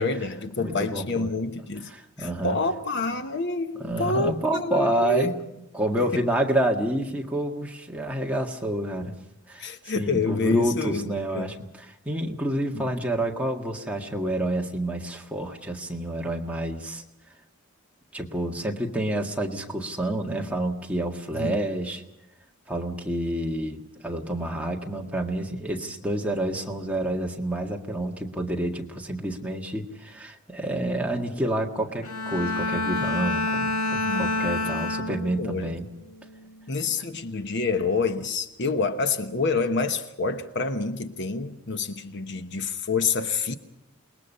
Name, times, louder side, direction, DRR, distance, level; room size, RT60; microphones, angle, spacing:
voice 1, 0.0-1.9 2.2-5.3 6.0-6.1 9.6-11.1 11.3-11.5 12.7-12.9 21.3-21.6 34.0-34.3 35.4-35.7 36.7-43.6, left 4 dB, 55° left, 1.1 m, -27 dB
voice 2, 0.6-1.3 1.9-2.6 3.8-5.3 5.7-9.2 9.5-9.7 10.0-17.0 18.1-22.0 22.7-35.9, right 1 dB, 5° right, 1.8 m, -28 dB
Bowed string instrument, 32.0-35.6 36.1-36.4, left 2 dB, 80° left, 1.8 m, -28 dB
28.0 x 20.5 x 5.6 m
head